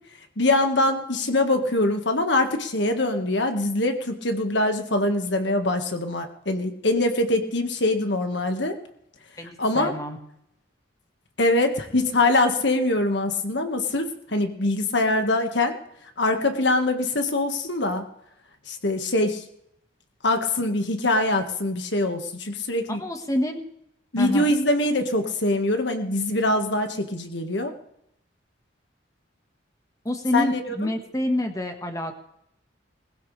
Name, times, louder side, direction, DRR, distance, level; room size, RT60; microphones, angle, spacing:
voice 1, 0.4-8.7 9.6-9.9 11.4-15.8 16.2-18.0 18.7-19.4 20.2-23.0 24.1-27.7 30.3-30.9, left 2 dB, 65° left, 6 dB, 1.7 m, -23 dB
voice 2, 9.4-10.2 22.9-23.6 24.2-24.5 30.0-32.1, left 1 dB, 15° left, 5 dB, 1.5 m, -27 dB
20.5 x 15.5 x 3.4 m, 0.75 s
head